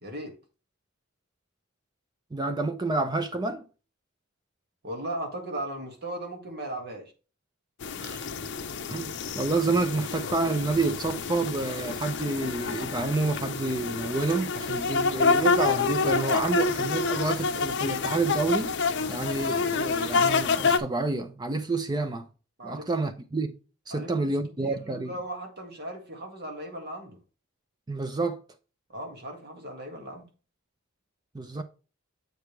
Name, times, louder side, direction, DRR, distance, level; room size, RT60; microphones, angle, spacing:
voice 1, 0.0-0.4 4.8-7.1 22.6-23.0 23.9-27.2 28.9-30.3, right 1 dB, 50° right, 1.9 m, -37 dB
voice 2, 2.3-3.6 8.0-8.2 8.9-18.7 19.1-22.3 22.6-23.6 23.9-25.1 27.9-28.4 31.3-31.6, right 3 dB, 20° right, 0.5 m, -29 dB
sound 1, 7.8-20.8, left 4 dB, 60° left, 0.6 m, -28 dB
7.8 x 5.0 x 3.1 m
head